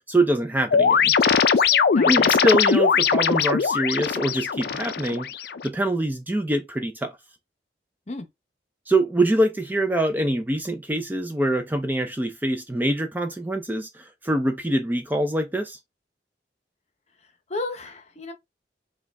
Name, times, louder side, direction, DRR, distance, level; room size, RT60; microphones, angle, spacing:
voice 1, 0.1-1.1 2.0-5.3 5.6-7.2 8.9-15.8, right 1 dB, 10° right, 0.4 m, -24 dB
sound 1, 0.7-5.7, left 6 dB, 60° left, 0.4 m, -20 dB
voice 2, 1.9-2.3 8.1-8.3 17.5-18.3, left 2 dB, 40° left, 0.8 m, -32 dB
4.8 x 2.3 x 3.3 m
head